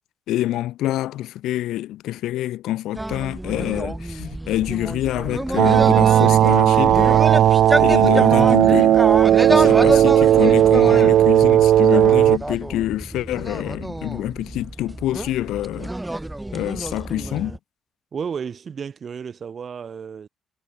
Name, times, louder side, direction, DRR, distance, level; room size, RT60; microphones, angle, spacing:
voice 1, 0.3-7.3 7.8-9.0 9.5-15.9 16.5-17.6, left 14 dB, 85° left, 1.0 m, -26 dB
sound 1, 3.0-17.6, right 1 dB, 10° right, 1.9 m, -28 dB
sound 2, 5.6-12.4, right 11 dB, 75° right, 0.6 m, -15 dB
voice 2, 18.1-20.3, right 6 dB, 50° right, 6.4 m, -32 dB
cardioid pair, 90°, 0 cm